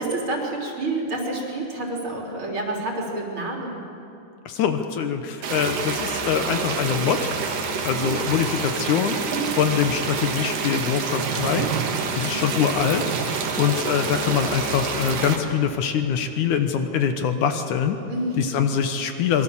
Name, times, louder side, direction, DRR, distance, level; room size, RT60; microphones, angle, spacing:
voice 1, 0.0-3.8 8.0-8.2 9.3-9.6 12.2-12.8 14.0-14.2 18.1-18.5, right 2 dB, 35° right, -1 dB, 4.1 m, -29 dB
voice 2, 4.5-7.3 7.8-9.2 9.6-11.7 12.2-13.0 13.6-18.0 18.4-19.4, left 8 dB, 65° left, 7 dB, 2.1 m, -23 dB
sound 1, 5.4-15.4, right 5 dB, 60° right, 3.2 m, -28 dB
sound 2, 11.2-12.4 13.0-13.7 15.6-15.7, right 8 dB, 80° right, 3.3 m, -31 dB
26.5 x 22.5 x 7.3 m, 2.8 s
omnidirectional pair, 4.6 m